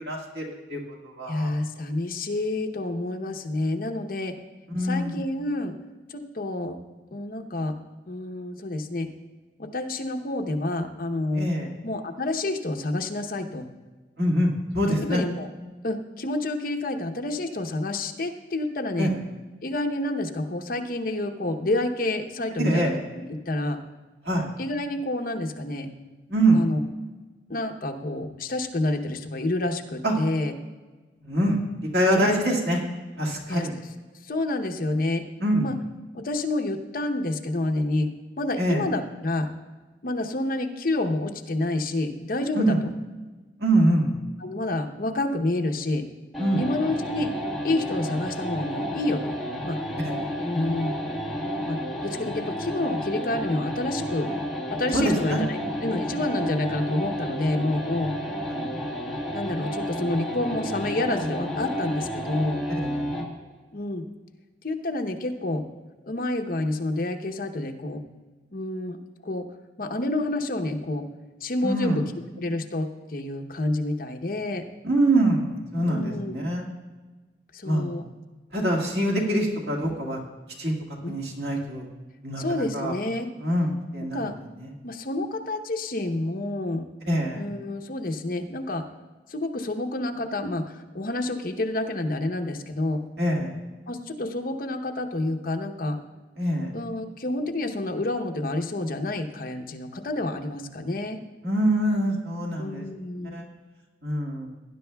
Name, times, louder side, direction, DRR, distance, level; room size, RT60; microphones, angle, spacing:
voice 1, 0.0-1.5 4.7-5.2 11.3-11.7 14.2-15.2 19.0-19.1 22.6-23.0 24.2-24.5 26.3-26.6 30.0-30.1 31.2-31.6 31.9-32.8 33.2-33.7 35.4-35.7 38.6-38.8 42.5-42.8 43.6-44.1 46.4-46.6 50.0-50.3 54.9-55.4 58.5-58.7 62.8-63.1 71.6-72.0 74.8-76.7 77.6-77.9 78.5-80.2 80.6-80.7 81.1-81.8 82.2-82.9 83.4-84.3 84.6-84.7 87.1-87.4 93.2-93.5 96.4-96.7 101.4-102.9 103.3-103.5 104.0-104.5, right 1 dB, 75° right, -2 dB, 2.0 m, -24 dB
voice 2, 1.3-4.4 4.8-5.7 6.1-6.8 7.1-7.8 8.1-9.1 9.6-11.5 11.8-13.7 15.0-15.5 15.8-19.1 19.6-23.8 24.6-25.9 26.5-26.8 27.5-30.5 32.1-32.4 33.5-33.7 34.2-35.2 35.6-35.7 36.1-38.1 38.4-39.5 40.0-42.8 44.4-46.1 46.6-47.3 47.6-49.4 49.6-49.8 50.5-51.0 51.7-54.3 54.7-58.1 59.3-62.6 63.7-64.0 64.6-65.6 66.0-68.0 68.5-69.0 69.2-69.5 69.8-71.1 71.4-72.1 72.4-74.7 75.9-76.3 77.5-78.0 81.0-81.1 82.4-83.3 84.1-84.4 84.8-86.8 87.3-88.8 89.3-93.0 93.9-96.0 96.7-101.2 102.6-103.4, left 2 dB, 50° left, 4 dB, 0.8 m, -28 dB
sound 1, 46.3-63.4, equal, ahead, 1.3 m, -31 dB
18.0 x 10.5 x 2.3 m, 1.3 s
head